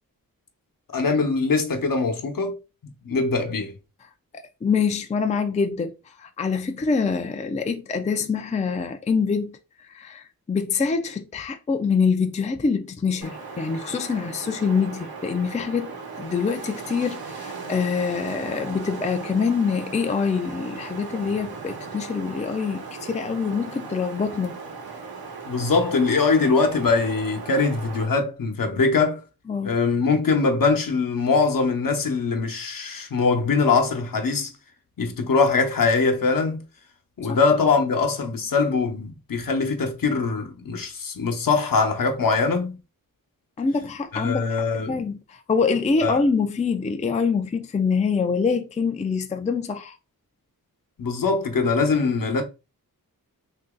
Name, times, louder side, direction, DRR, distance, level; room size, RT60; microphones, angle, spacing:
voice 1, 0.9-2.6 2.8-3.7 25.5-29.2 29.6-34.5 35.0-36.6 37.2-42.8 44.1-45.0 46.0-46.2 51.0-52.4, left 4 dB, 65° left, 0.9 m, -22 dB
voice 2, 4.6-9.6 9.9-15.9 16.2-24.6 29.5-29.7 37.3-37.4 43.6-44.5 44.7-50.0, left 5 dB, 20° left, 0.4 m, -25 dB
Wind, 13.2-28.1, right 4 dB, 90° right, 1.0 m, -37 dB
2.9 x 2.7 x 3.6 m
wide cardioid pair, 85°, 36 cm